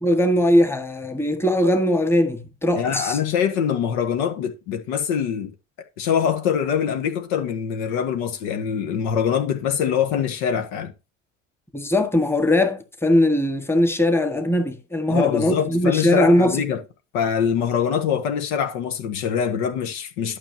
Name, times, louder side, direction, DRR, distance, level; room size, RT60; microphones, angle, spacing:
voice 1, 0.0-3.2 11.7-16.7, left 1 dB, 5° left, 1.7 m, -20 dB
voice 2, 2.7-5.5 6.0-10.9 15.1-16.8 17.1-20.4, left 7 dB, 55° left, 1.6 m, -24 dB
12.0 x 6.2 x 2.8 m
figure-of-eight pair, 70°, 39 cm